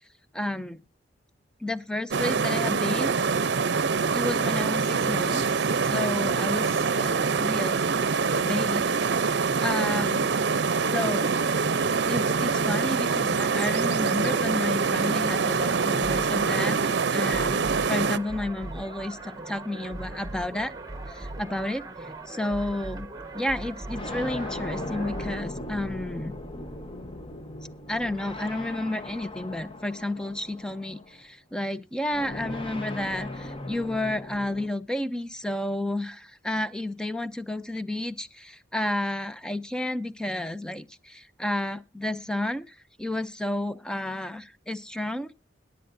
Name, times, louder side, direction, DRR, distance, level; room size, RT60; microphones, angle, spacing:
voice 1, 0.3-0.8 1.6-3.3 4.1-5.5 5.8-7.9 8.4-9.0 9.6-10.4 10.8-11.3 12.1-20.7 21.1-23.1 23.3-26.4 27.9-45.3, left 1 dB, 5° left, 0.5 m, -31 dB
sound 1, 2.1-18.2, right 5 dB, 65° right, 0.6 m, -25 dB
sound 2, 15.0-25.4, right 2 dB, 20° right, 1.2 m, -39 dB
sound 3, 19.1-21.8 22.7-22.8 23.9-31.2 32.1-34.7, left 1 dB, 30° left, 1.0 m, -38 dB
21.5 x 7.8 x 2.6 m
head